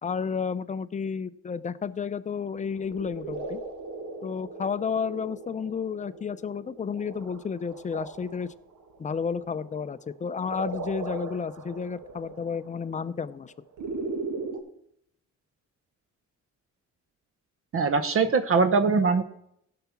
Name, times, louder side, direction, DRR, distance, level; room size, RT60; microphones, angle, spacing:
voice 1, 0.0-3.6 4.2-8.5 9.0-13.5, left 6 dB, 25° left, 14 dB, 0.4 m, -31 dB
sound 1, 2.6-14.6, right 3 dB, 75° right, 1.6 m, -39 dB
voice 2, 17.7-19.2, right 4 dB, 45° right, 10 dB, 0.9 m, -22 dB
15.5 x 5.8 x 5.9 m, 0.74 s
cardioid pair, 110°, 31 cm